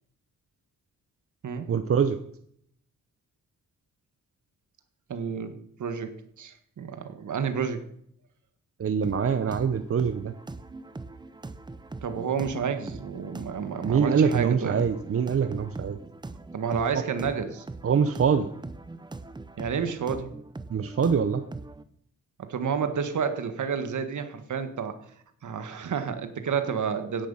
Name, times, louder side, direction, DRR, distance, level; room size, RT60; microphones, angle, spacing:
voice 1, 1.7-2.2 8.8-10.3 13.8-16.0 17.8-18.5 20.7-21.4, right 6 dB, 45° right, 10 dB, 0.8 m, -24 dB
voice 2, 5.1-7.8 12.0-14.8 16.5-17.6 19.6-20.3 22.4-25.0 25.4-27.3, right 6 dB, 70° right, 9 dB, 1.7 m, -30 dB
sound 1, 9.0-21.8, right 3 dB, 15° right, 0.7 m, -42 dB
16.5 x 10.5 x 5.6 m, 0.69 s
wide cardioid pair, 165°, 31 cm